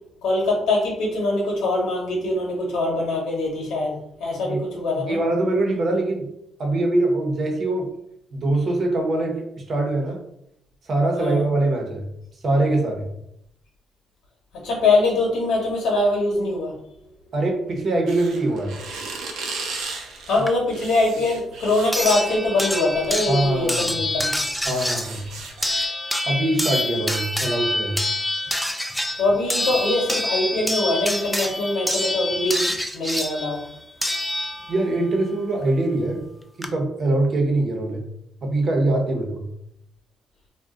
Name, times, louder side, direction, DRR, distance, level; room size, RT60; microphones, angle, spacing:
voice 1, 0.2-5.2 11.2-11.4 14.5-16.7 20.3-24.4 29.2-33.6, left 2 dB, 85° left, -4 dB, 1.0 m, -23 dB
voice 2, 5.0-6.3 6.6-7.9 8.3-10.2 10.9-12.0 12.4-13.1 17.3-18.8 23.3-24.0 24.6-25.2 26.2-28.0 34.7-36.2 36.6-38.0 38.4-39.5, right 2 dB, 50° right, 2 dB, 0.9 m, -23 dB
sound 1, 18.1-22.4 23.4-23.6 24.0-25.8, right 4 dB, 80° right, 0.6 m, -35 dB
sound 2, 20.5-20.6 21.9-34.9 36.2-36.3 36.6-36.7, left 1 dB, ahead, 0.3 m, -26 dB
2.4 x 2.3 x 3.7 m, 0.76 s
cardioid pair, 90°, 0 cm